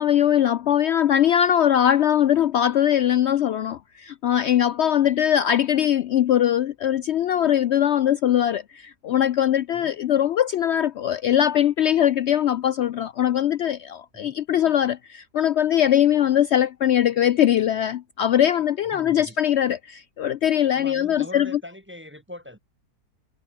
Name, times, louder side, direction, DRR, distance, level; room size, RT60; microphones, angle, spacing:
voice 1, 0.0-21.6, left 10 dB, 90° left, 0.5 m, -21 dB
voice 2, 18.9-19.4 20.7-22.6, left 1 dB, 10° right, 0.7 m, -41 dB
omnidirectional pair, 1.7 m